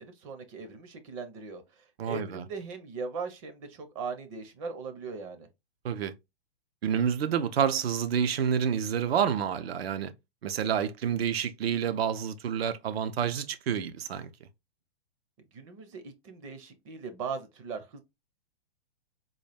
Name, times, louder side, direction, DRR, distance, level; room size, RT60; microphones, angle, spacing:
voice 1, 0.0-5.5 15.5-18.0, right 5 dB, 30° right, 0.7 m, -39 dB
voice 2, 2.0-2.4 5.8-6.1 6.8-10.1 10.4-14.3, right 8 dB, 70° right, 0.7 m, -28 dB
3.9 x 2.2 x 3.3 m
hypercardioid pair, 145°, 32 cm